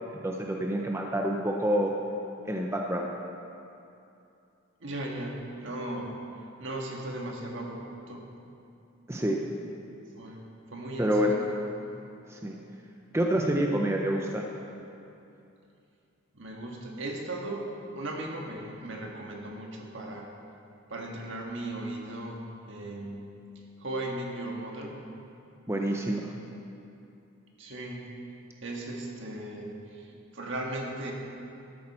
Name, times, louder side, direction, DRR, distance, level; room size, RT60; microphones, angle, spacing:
voice 1, 0.2-1.9 2.5-3.1 9.1-9.4 11.0-11.4 12.3-12.6 13.1-14.4 25.7-26.3, right 1 dB, 15° right, 0 dB, 0.6 m, -27 dB
voice 2, 4.8-6.1 6.6-8.3 10.1-12.0 16.3-20.3 20.9-23.4 23.8-24.9 27.6-28.1 28.6-31.1, right 1 dB, 60° right, 0 dB, 1.6 m, -37 dB
13.0 x 11.0 x 4.3 m, 2.7 s
head